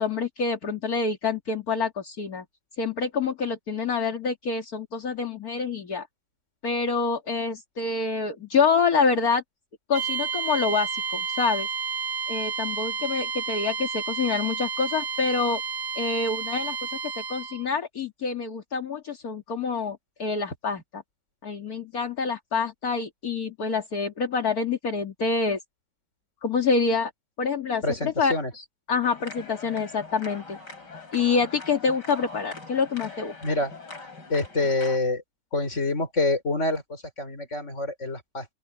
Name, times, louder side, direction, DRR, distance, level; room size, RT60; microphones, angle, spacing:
voice 1, 0.0-2.4 2.8-6.1 6.6-9.4 9.9-11.7 12.3-15.6 15.9-16.8 17.2-21.0 21.4-25.6 26.4-27.1 27.4-28.3 28.9-30.6 31.1-33.3, left 5 dB, 60° left, 2.7 m, -26 dB
sound 1, 9.9-17.7, right 5 dB, 50° right, 1.9 m, -31 dB
voice 2, 27.8-28.5 33.4-33.7 34.3-35.2 35.5-38.4, left 2 dB, 45° left, 4.6 m, -26 dB
sound 2, 29.0-35.0, left 3 dB, 85° left, 6.9 m, -42 dB
open air
omnidirectional pair, 1.8 m